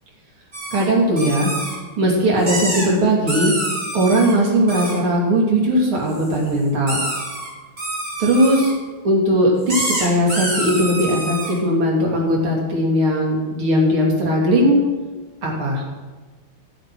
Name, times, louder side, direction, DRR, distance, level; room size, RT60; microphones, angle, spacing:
sound 1, 0.5-0.9 1.2-1.8 2.4-2.9 3.3-4.4 4.7-5.0 6.1-6.4 6.9-7.5 7.8-8.7 9.7-11.5, right 1 dB, 35° right, 3.3 m, -26 dB
voice 1, 0.7-1.5 2.0-3.6 3.9-7.1 8.2-8.7 9.0-14.9 15.4-15.8, equal, 80° right, -2 dB, 3.4 m, -18 dB
13.0 x 8.3 x 6.1 m, 1.3 s
omnidirectional pair, 2.3 m